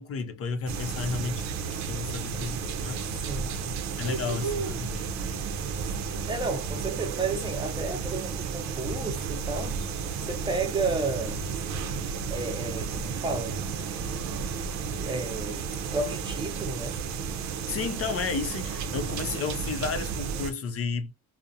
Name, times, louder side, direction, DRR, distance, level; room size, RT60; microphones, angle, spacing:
voice 1, 0.0-3.1 3.5-3.7 4.0-5.4 17.7-21.1, left 5 dB, 50° left, 0.6 m, -33 dB
sound 1, 0.7-20.5, right 6 dB, 65° right, 0.5 m, -32 dB
voice 2, 3.1-3.8 6.2-9.8 10.2-11.4 12.3-13.6 14.6-17.0, right 3 dB, 15° right, 0.7 m, -32 dB
2.4 x 2.0 x 2.7 m
cardioid pair, 90°, 30 cm